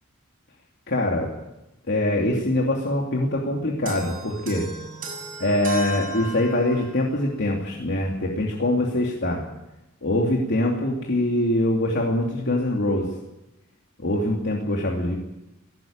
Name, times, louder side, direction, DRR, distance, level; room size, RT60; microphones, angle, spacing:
voice 1, 0.9-1.3 1.9-4.7 5.4-9.4 10.0-13.1 14.0-15.1, left 1 dB, 55° left, -1 dB, 2.8 m, -23 dB
sound 1, 3.9-7.1, equal, 45° right, 7.4 m, -35 dB
19.0 x 17.5 x 8.9 m, 0.95 s
head